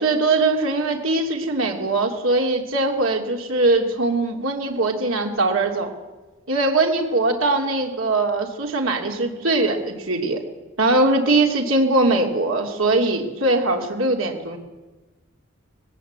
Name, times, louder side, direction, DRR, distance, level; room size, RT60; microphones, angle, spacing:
voice 1, 0.0-5.9 6.5-10.4 10.8-14.6, right 2 dB, 80° right, 2 dB, 2.9 m, -21 dB
19.5 x 17.5 x 8.2 m, 1.2 s
head